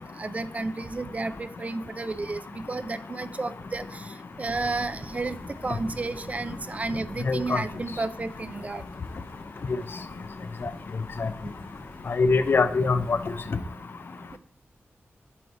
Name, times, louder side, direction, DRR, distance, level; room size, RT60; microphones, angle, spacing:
voice 1, 0.0-3.8 4.4-5.4 5.6-8.8 14.3-14.4, right 3 dB, 35° right, 14 dB, 0.3 m, -32 dB
sound 1, 4.5-13.4, equal, 35° left, 1.7 m, -45 dB
voice 2, 7.2-7.6 10.6-10.7 11.2-11.3 12.1-13.2, left 4 dB, 55° left, 12 dB, 0.4 m, -23 dB
8.4 x 3.2 x 4.0 m, 0.67 s
wide cardioid pair, 115°, 4 cm